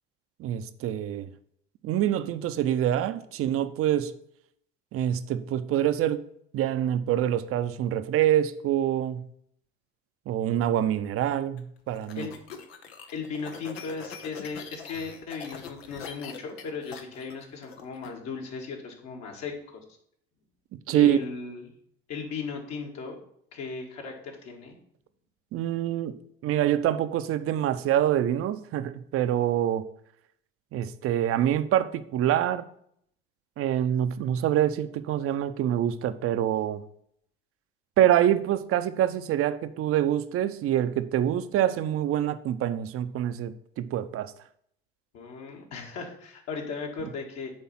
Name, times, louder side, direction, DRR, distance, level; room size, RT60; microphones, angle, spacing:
voice 1, 0.4-1.3 1.8-4.1 4.9-6.2 6.5-9.2 10.3-12.3 20.9-21.2 25.5-26.1 26.4-29.8 30.7-32.7 33.6-36.8 38.0-44.3, right 11 dB, 50° right, 12 dB, 0.7 m, -25 dB
sound 1, 11.6-18.1, left 7 dB, 85° left, 0.9 m, -43 dB
voice 2, 13.1-19.8 20.9-21.7 22.1-23.2 23.5-24.8 45.1-47.5, left 5 dB, 60° left, 1 dB, 2.1 m, -37 dB
8.7 x 3.4 x 5.7 m, 0.69 s
hypercardioid pair, 70°, 30 cm